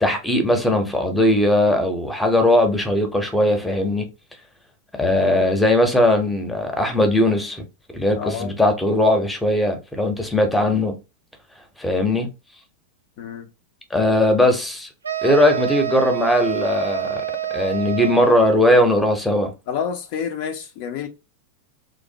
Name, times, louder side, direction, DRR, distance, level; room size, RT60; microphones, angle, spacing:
voice 1, 0.0-4.1 5.0-7.6 7.9-11.0 11.8-12.3 13.9-14.9 15.2-17.2 17.5-19.5, left 1 dB, 5° left, 0.6 m, -19 dB
voice 2, 8.2-8.5 13.2-13.5 19.7-21.1, left 7 dB, 45° left, 0.4 m, -28 dB
sound 1, 15.0-18.7, right 12 dB, 75° right, 0.3 m, -27 dB
2.5 x 2.1 x 2.7 m
figure-of-eight pair, 90°, 0 cm